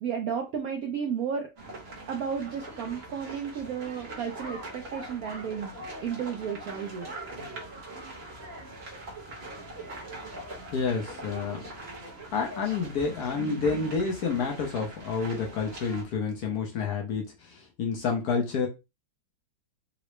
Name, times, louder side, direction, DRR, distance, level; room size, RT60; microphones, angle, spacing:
voice 1, 0.0-1.5 2.1-5.7 6.0-7.1, right 7 dB, 75° right, 3 dB, 0.8 m, -33 dB
sound 1, 1.6-16.0, right 2 dB, 40° right, 1.1 m, -42 dB
voice 2, 10.7-11.7 12.3-18.7, left 5 dB, 65° left, 1 dB, 1.0 m, -29 dB
3.7 x 2.1 x 3.1 m, 0.26 s
omnidirectional pair, 2.1 m